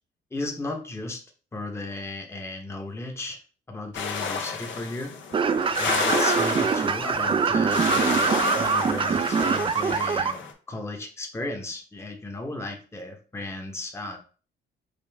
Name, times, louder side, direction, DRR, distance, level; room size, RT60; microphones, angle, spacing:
voice 1, 0.3-1.2 1.5-3.4 3.7-5.2 5.7-14.2, left 2 dB, 15° left, 2 dB, 0.9 m, -35 dB
sound 1, 3.9-10.5, left 6 dB, 70° left, 0.8 m, -31 dB
sound 2, 5.3-10.3, right 5 dB, 25° right, 0.3 m, -23 dB
5.1 x 2.4 x 3.4 m, 0.38 s
cardioid pair, 90°, 20 cm